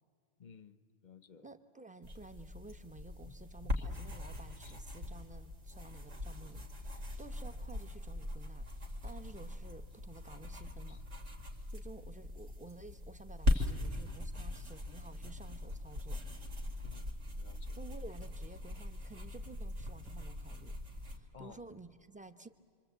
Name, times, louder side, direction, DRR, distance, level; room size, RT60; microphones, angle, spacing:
voice 1, 0.4-1.5 3.2-3.3 3.6-3.9 4.6-4.8 10.9-11.0 13.5-13.7 16.8-17.8 21.3-21.6, left 7 dB, 45° left, 14 dB, 0.9 m, -56 dB
voice 2, 1.4-11.0 11.7-16.2 17.8-20.7 21.1-22.5, right 2 dB, 5° right, 9 dB, 0.9 m, -53 dB
sound 1, 2.0-21.2, left 2 dB, 85° right, 2.9 m, -40 dB
27.0 x 25.5 x 8.2 m, 2.2 s
omnidirectional pair, 1.2 m